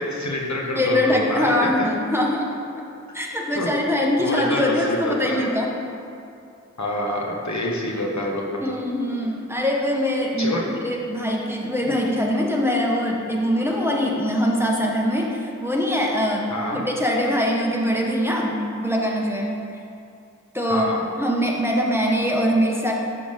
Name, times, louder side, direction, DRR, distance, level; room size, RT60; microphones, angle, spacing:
voice 1, 0.0-1.6 3.5-3.7 4.2-5.4 6.8-8.4 10.4-10.6 11.8-11.9 16.5-16.8 20.7-21.0, left 1 dB, 65° left, -2 dB, 1.2 m, -27 dB
voice 2, 0.8-2.5 3.1-5.7 8.6-19.5 20.5-22.9, equal, 10° right, -2 dB, 1.2 m, -23 dB
11.0 x 7.1 x 3.5 m, 2.6 s
wide cardioid pair, 45°, 30 cm